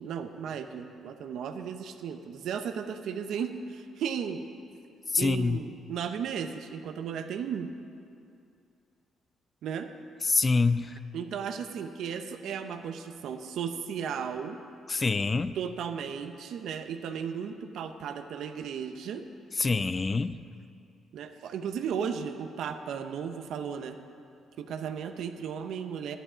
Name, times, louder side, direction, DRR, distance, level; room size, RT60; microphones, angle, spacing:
voice 1, 0.0-4.5 5.2-7.7 9.6-9.9 11.1-14.6 15.5-19.2 21.1-24.0 24.6-26.2, right 7 dB, 75° right, 7 dB, 0.8 m, -35 dB
voice 2, 5.1-5.6 10.3-10.9 14.9-15.5 19.6-20.4, left 4 dB, 30° left, 14 dB, 0.4 m, -25 dB
11.0 x 11.0 x 5.1 m, 2.5 s
cardioid pair, 90°, 0 cm